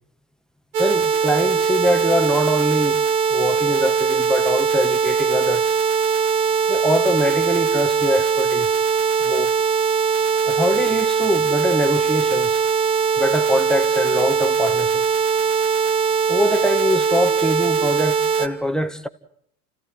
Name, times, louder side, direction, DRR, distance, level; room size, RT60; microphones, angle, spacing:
sound 1, 0.7-18.5, right 6 dB, 55° right, 2.8 m, -20 dB
voice 1, 0.8-3.0 3.3-5.7 6.7-8.7 9.2-9.5 10.5-12.6 13.2-15.0 16.3-19.1, left 1 dB, ahead, 1.7 m, -23 dB
30.0 x 16.5 x 9.6 m
hypercardioid pair, 85°, 49 cm